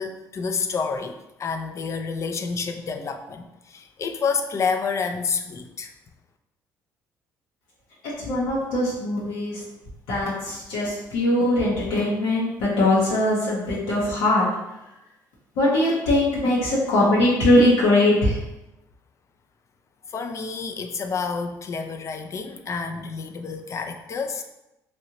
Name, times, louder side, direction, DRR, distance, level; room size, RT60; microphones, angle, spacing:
voice 1, 0.0-5.9 20.1-24.4, left 5 dB, 40° left, 6 dB, 0.4 m, -29 dB
voice 2, 8.0-9.6 10.1-14.5 15.6-18.4, left 1 dB, 85° left, -7 dB, 1.0 m, -21 dB
3.1 x 2.6 x 2.9 m, 0.92 s
supercardioid pair, 80°, 7 cm